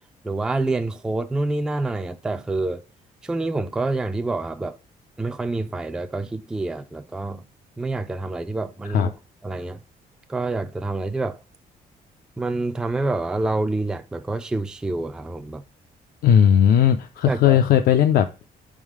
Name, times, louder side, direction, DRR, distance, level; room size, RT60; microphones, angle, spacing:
voice 1, 0.2-2.8 3.2-4.8 5.2-7.5 7.8-9.1 9.4-9.8 10.3-11.4 12.4-15.6 17.3-17.6, right 2 dB, 5° right, 0.3 m, -27 dB
voice 2, 16.2-18.5, left 9 dB, 70° left, 0.5 m, -17 dB
5.5 x 3.7 x 4.7 m
cardioid pair, 175°, 15 cm